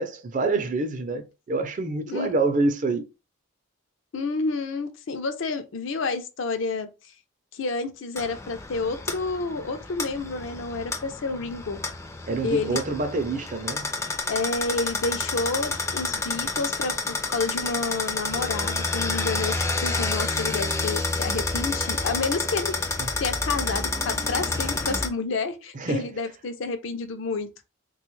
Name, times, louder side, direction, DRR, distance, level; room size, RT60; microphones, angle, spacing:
voice 1, 0.0-3.0 12.3-13.9 23.0-23.1 25.7-26.0, right 3 dB, 40° right, 0.5 m, -26 dB
voice 2, 4.1-6.9 7.5-11.8 12.4-12.8 14.3-22.9 23.2-27.5, left 3 dB, 70° left, 0.5 m, -29 dB
sound 1, 8.2-25.1, left 3 dB, 15° left, 0.4 m, -29 dB
3.3 x 2.3 x 3.1 m
head